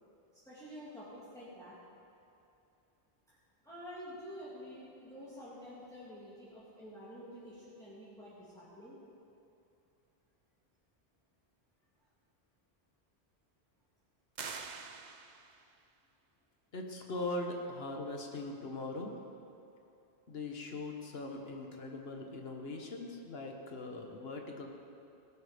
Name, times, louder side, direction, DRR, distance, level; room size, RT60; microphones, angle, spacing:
voice 1, 0.5-1.7 3.6-8.9, equal, 5° left, -11 dB, 2.7 m, -49 dB
sound 1, 14.4-15.7, right 5 dB, 50° right, 0.8 m, -45 dB
voice 2, 16.7-19.1 20.3-24.7, left 2 dB, 75° left, 2 dB, 1.6 m, -40 dB
17.0 x 12.0 x 5.1 m, 2.7 s
omnidirectional pair, 1.0 m